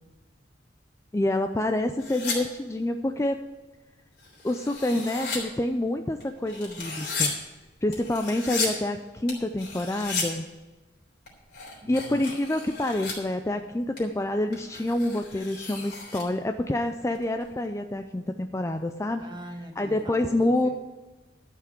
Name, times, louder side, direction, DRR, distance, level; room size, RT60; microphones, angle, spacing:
voice 1, 1.1-3.4 4.4-7.3 7.8-10.5 11.9-19.2 19.8-20.7, left 1 dB, 15° left, 7 dB, 0.4 m, -27 dB
sound 1, 2.0-2.4 4.2-5.4 6.2-7.3 7.9-8.7 9.3-10.3 11.3-13.2 14.0-14.1 14.5-16.2 17.1-17.7, left 4 dB, 55° left, 3.6 m, -34 dB
voice 2, 11.8-12.2 19.2-20.7, right 1 dB, 25° right, 4 dB, 1.4 m, -42 dB
12.5 x 5.8 x 7.8 m, 1.2 s
head